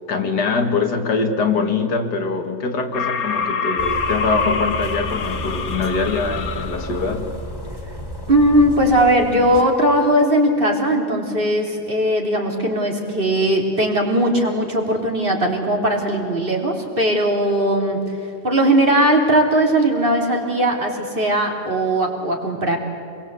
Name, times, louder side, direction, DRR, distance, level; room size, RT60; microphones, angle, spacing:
voice 1, 0.1-7.4, left 4 dB, 80° left, 5 dB, 2.5 m, -23 dB
sound 1, 2.9-7.1, left 5 dB, 60° left, 1.5 m, -25 dB
sound 2, 3.8-9.6, equal, 15° left, 3.0 m, -32 dB
voice 2, 8.3-18.0 18.4-22.8, right 1 dB, 30° right, 1 dB, 3.5 m, -18 dB
27.0 x 22.0 x 8.3 m, 2.6 s
omnidirectional pair, 1.7 m